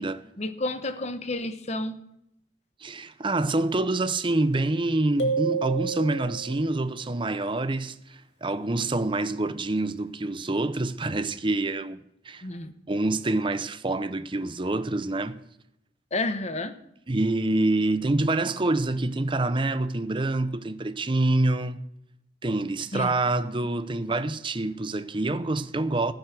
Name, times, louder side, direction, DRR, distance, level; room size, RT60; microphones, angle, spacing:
voice 1, 0.4-2.0 12.4-12.7 16.1-16.7 22.9-23.1, left 2 dB, 40° left, 1.1 m, -30 dB
voice 2, 2.8-12.0 12.2-12.4 12.9-15.4 17.1-21.9 22.4-26.1, right 2 dB, 30° right, 0.7 m, -26 dB
sound 1, 5.2-6.7, right 4 dB, 90° left, 2.2 m, -29 dB
15.0 x 9.7 x 6.1 m
head